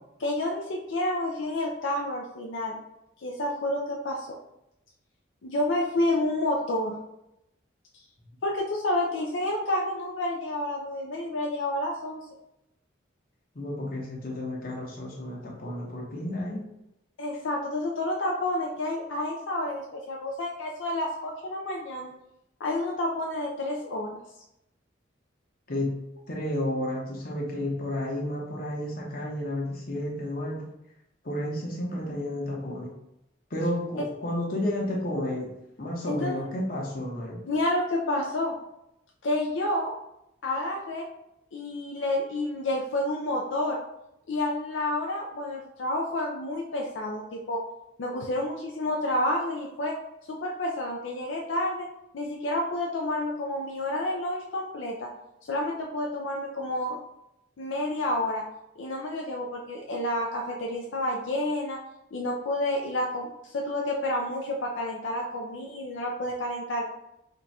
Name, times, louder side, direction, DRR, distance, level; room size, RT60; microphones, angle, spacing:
voice 1, 0.2-2.8 3.2-4.4 5.4-7.0 8.4-12.2 17.2-22.1 22.6-24.2 36.1-36.4 37.5-38.6 39.2-39.9 40.4-41.1 41.5-43.8 44.3-47.6 48.0-50.0 50.3-51.9 52.1-55.1 55.4-57.0 57.6-58.4 58.8-61.8 62.1-66.8, left 1 dB, 75° left, -1 dB, 0.5 m, -29 dB
voice 2, 13.5-16.6 25.7-25.9 26.3-30.7 31.2-32.9 33.5-35.5 35.8-37.4, left 1 dB, 45° left, -3 dB, 1.0 m, -31 dB
3.8 x 2.3 x 4.0 m, 0.85 s
head